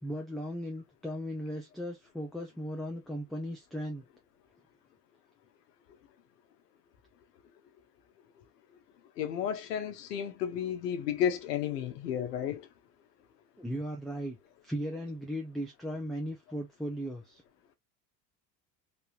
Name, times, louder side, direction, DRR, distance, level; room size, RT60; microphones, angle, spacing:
voice 1, 0.0-4.1 13.6-14.4 14.6-17.4, equal, ahead, 1.2 m, -37 dB
voice 2, 9.2-12.7, left 9 dB, 70° left, 1.1 m, -32 dB
4.2 x 3.5 x 2.5 m
figure-of-eight pair, 65°, 50 cm